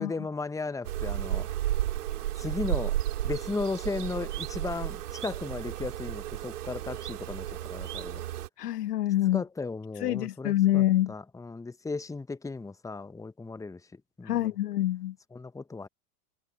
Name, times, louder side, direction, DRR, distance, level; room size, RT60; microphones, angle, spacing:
voice 1, 0.0-1.5 2.4-3.0 3.2-8.2 9.3-14.5 15.3-15.9, left 3 dB, 5° left, 1.0 m, -36 dB
sound 1, 0.8-8.5, right 13 dB, 75° right, 3.6 m, -33 dB
voice 2, 8.6-9.4 10.0-11.1 14.3-15.1, left 14 dB, 80° left, 1.0 m, -26 dB
hypercardioid pair, 90°, 47 cm